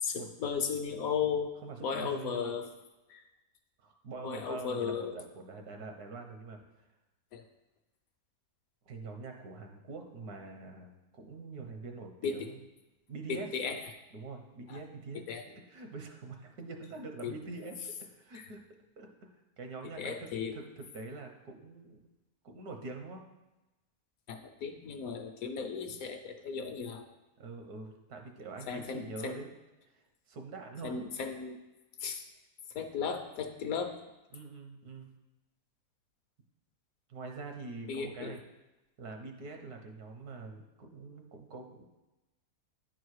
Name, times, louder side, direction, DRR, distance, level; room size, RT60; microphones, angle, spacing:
voice 1, 0.0-1.5 1.8-2.7 3.1-3.2 4.2-5.2 7.3-7.4 12.2-12.5 13.3-13.8 14.7-14.8 15.1-15.4 17.2-17.3 18.3-18.4 20.0-20.5 24.3-27.0 28.7-29.4 30.8-31.6 32.0-32.2 32.7-34.0 37.9-38.4, left 6 dB, 70° left, 6 dB, 1.1 m, -35 dB
voice 2, 1.6-2.5 3.8-6.6 8.9-12.6 13.1-13.5 14.1-18.6 19.0-19.3 19.6-22.1 22.4-23.2 25.9-26.0 27.4-29.5 30.3-31.0 34.3-35.1 37.1-38.4 39.0-41.8, right 3 dB, 75° right, 4 dB, 1.5 m, -44 dB
9.8 x 4.7 x 4.7 m, 1.0 s
omnidirectional pair, 1.7 m